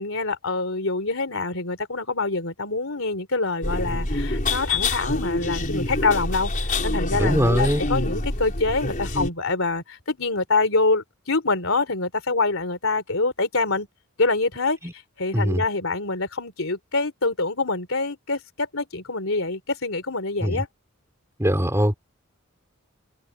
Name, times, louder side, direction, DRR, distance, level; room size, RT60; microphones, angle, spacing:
voice 1, 0.0-6.5 6.8-13.9 14.2-14.8 15.2-20.7, left 3 dB, 65° left, 3.9 m, -25 dB
sound 1, 3.6-9.3, left 2 dB, 40° left, 4.9 m, -26 dB
voice 2, 7.1-7.8 14.8-14.9 15.3-15.6 20.4-20.6 21.4-21.9, equal, 15° right, 4.4 m, -22 dB
head